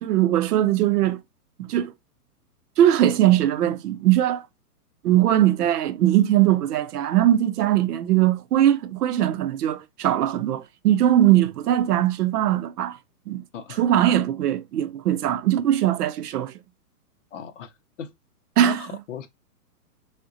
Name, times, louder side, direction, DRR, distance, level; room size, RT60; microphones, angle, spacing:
voice 1, 0.0-1.2 1.6-1.9 2.8-4.4 5.0-13.0 13.3-13.4 13.8-16.5 18.6-18.8, right 12 dB, 75° right, 0.6 m, -20 dB
voice 2, 17.3-17.7 18.0-18.1 18.6-19.3, left 8 dB, 50° left, 0.5 m, -36 dB
3.6 x 2.2 x 2.4 m
hypercardioid pair, 165°, 47 cm